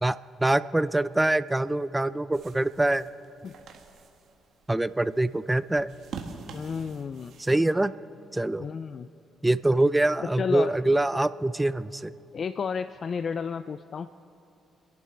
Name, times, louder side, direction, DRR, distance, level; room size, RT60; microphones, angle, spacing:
voice 1, 0.0-3.1 4.7-5.9 7.4-7.9 8.3-8.7 9.4-12.1, right 2 dB, 10° right, 15 dB, 0.4 m, -24 dB
sound 1, 2.3-7.5, right 5 dB, 65° right, 1.8 m, -45 dB
voice 2, 6.5-7.4 8.6-9.1 10.4-10.7 12.3-14.1, left 6 dB, 50° left, 13 dB, 0.4 m, -32 dB
29.0 x 11.0 x 4.5 m, 2.7 s
cardioid pair, 90°, 0 cm